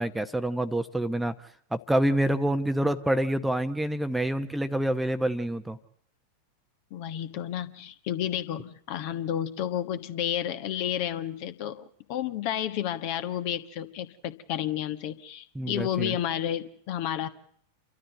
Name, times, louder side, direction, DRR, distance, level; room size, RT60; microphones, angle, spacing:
voice 1, 0.0-1.3 1.7-5.8 15.5-16.2, right 1 dB, 5° right, 11 dB, 0.9 m, -27 dB
voice 2, 6.9-17.3, left 10 dB, 45° left, 11 dB, 1.3 m, -31 dB
28.5 x 13.0 x 7.9 m, 0.65 s
figure-of-eight pair, 90°, 0 cm